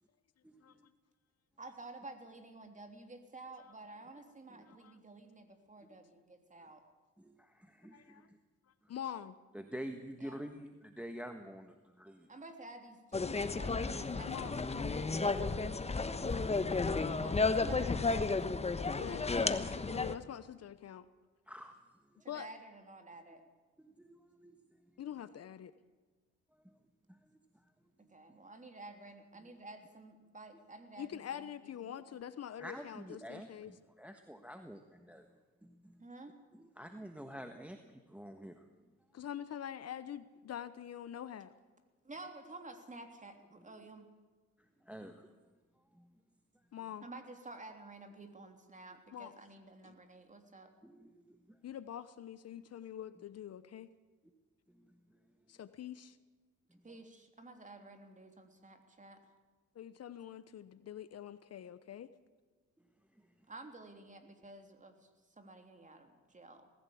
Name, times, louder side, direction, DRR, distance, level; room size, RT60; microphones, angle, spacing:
voice 1, 0.4-0.9 4.5-4.7 5.8-5.9 7.2-8.4 8.8-8.9 9.5-12.3 21.5-21.8 22.0-22.3 23.8-25.0 26.5-26.8 27.1-27.7 28.0-28.1 29.4-29.6 32.6-35.3 35.6-36.0 36.5-38.8 43.6-43.8 44.6-45.4 45.9-46.1 50.8-51.6 54.7-55.2 56.7-56.8 63.1-63.5, equal, 5° right, 6 dB, 1.4 m, -49 dB
voice 2, 1.6-6.8 10.2-10.4 12.3-16.7 17.2-18.5 22.2-23.4 28.0-32.0 36.0-36.3 42.0-44.1 47.0-50.7 56.8-59.2 63.5-65.1 65.4-66.7, right 2 dB, 25° right, 6 dB, 3.2 m, -52 dB
voice 3, 7.9-8.3 8.9-9.4 14.3-14.6 19.0-19.5 19.9-21.0 22.3-22.5 25.0-25.7 31.0-33.7 39.1-41.5 46.7-47.1 49.1-49.3 49.8-49.9 51.6-53.9 55.5-56.2 59.8-62.1, left 10 dB, 55° left, 14 dB, 1.0 m, -45 dB
sound 1, 13.1-20.1, left 3 dB, 20° left, 1.2 m, -33 dB
19.5 x 15.5 x 8.6 m, 1.3 s
cardioid pair, 90°, 30 cm